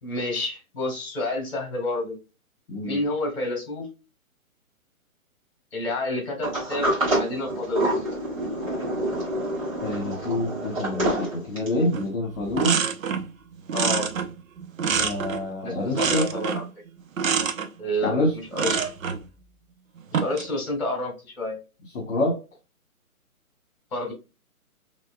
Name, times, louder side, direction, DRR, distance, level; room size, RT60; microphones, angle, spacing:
voice 1, 0.0-2.2 2.8-3.9 5.7-7.9 13.7-14.1 15.6-16.6 17.8-18.8 20.1-21.6 23.9-24.1, left 1 dB, 45° left, 3 dB, 2.2 m, -29 dB
voice 2, 2.7-3.0 9.8-12.8 14.9-16.3 18.0-18.4 21.9-22.4, left 1 dB, 60° left, -2 dB, 1.6 m, -27 dB
Sliding door, 6.4-11.9, right 1 dB, 25° right, 1.8 m, -27 dB
sound 1, 11.9-12.1 12.4-13.3 13.7-15.5 15.9-16.7 17.2-17.7 18.5-19.2 20.0-20.5, right 6 dB, 65° right, 0.8 m, -26 dB
4.1 x 3.1 x 2.2 m, 0.28 s
hypercardioid pair, 175°, 43 cm